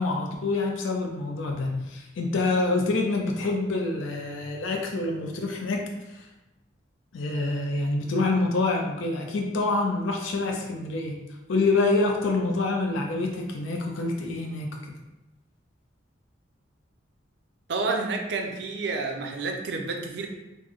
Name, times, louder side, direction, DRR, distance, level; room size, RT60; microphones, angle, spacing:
voice 1, 0.0-5.9 7.1-11.2 11.5-14.7, left 3 dB, 75° left, 1 dB, 0.4 m, -26 dB
voice 2, 17.7-20.3, right 3 dB, 55° right, 3 dB, 0.4 m, -29 dB
3.2 x 2.1 x 3.5 m, 0.98 s
head